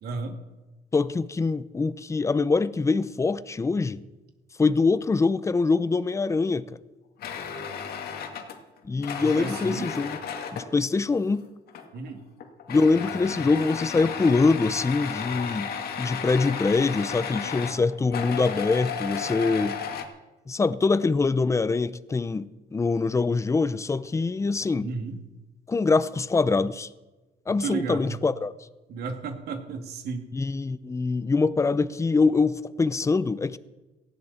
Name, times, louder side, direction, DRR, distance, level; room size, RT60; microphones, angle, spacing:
voice 1, 0.0-0.4 9.2-9.9 11.9-12.2 24.8-25.2 27.6-28.2 28.9-30.3, right 4 dB, 70° right, 2.7 m, -33 dB
voice 2, 0.9-4.0 4.6-6.8 8.8-10.2 10.5-11.4 12.7-15.7 16.0-19.8 20.5-24.9 25.7-26.9 27.5-28.5 30.3-33.6, left 4 dB, 15° left, 0.7 m, -24 dB
sound 1, 7.2-10.7 11.7-12.1 12.4-20.0, left 7 dB, 65° left, 2.2 m, -34 dB
18.5 x 15.5 x 4.4 m
cardioid pair, 110°, 17 cm